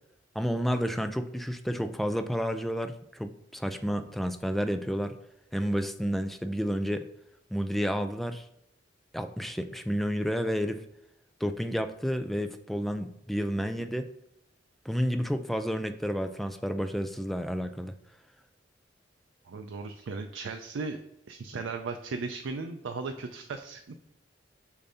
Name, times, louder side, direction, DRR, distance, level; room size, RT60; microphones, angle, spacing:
voice 1, 0.4-5.2 5.5-7.0 7.5-8.5 9.1-10.8 11.4-14.0 14.9-17.9, equal, ahead, 8 dB, 0.3 m, -30 dB
voice 2, 19.5-21.0 21.3-24.0, right 4 dB, 85° right, 6 dB, 0.4 m, -36 dB
6.8 x 2.7 x 5.4 m, 0.80 s
head